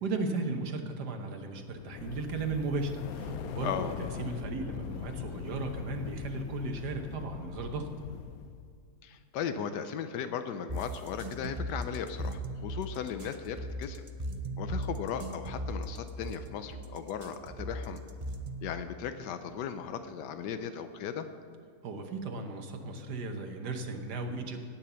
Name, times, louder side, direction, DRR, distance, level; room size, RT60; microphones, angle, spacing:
voice 1, 0.0-7.9 21.8-24.6, right 3 dB, 75° right, 5 dB, 1.6 m, -35 dB
sound 1, 1.7-8.7, left 9 dB, 70° left, 1.0 m, -41 dB
voice 2, 9.0-14.0 14.6-18.0 18.6-21.3, left 8 dB, 90° left, 9 dB, 1.3 m, -37 dB
sound 2, 10.7-18.7, right 1 dB, 40° right, 0.4 m, -37 dB
17.5 x 5.9 x 6.9 m, 2.4 s
omnidirectional pair, 1.8 m